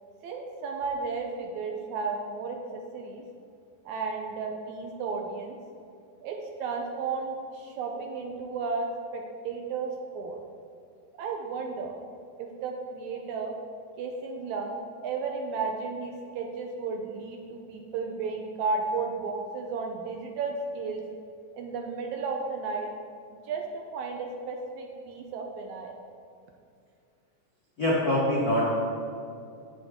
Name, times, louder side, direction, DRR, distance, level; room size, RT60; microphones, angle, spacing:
voice 1, 0.2-3.2 3.9-5.6 6.2-10.4 11.2-12.0 12.4-13.5 14.0-21.0 21.5-22.9 23.3-25.9, right 4 dB, 75° right, 2 dB, 1.8 m, -33 dB
voice 2, 27.8-28.8, left 1 dB, 70° left, -7 dB, 0.8 m, -24 dB
9.9 x 6.4 x 3.6 m, 2.4 s
omnidirectional pair, 3.8 m